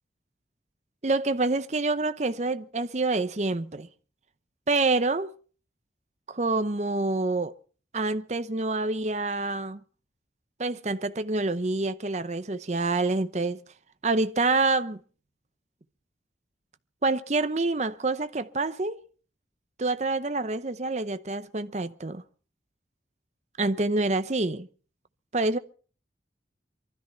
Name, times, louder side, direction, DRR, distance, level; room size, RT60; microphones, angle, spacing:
voice 1, 1.0-3.9 4.7-5.3 6.3-7.5 7.9-9.8 10.6-13.6 14.0-15.0 17.0-19.0 19.8-22.2 23.6-24.7 25.3-25.6, right 3 dB, 40° right, 0.7 m, -27 dB
23.5 x 13.0 x 4.4 m
head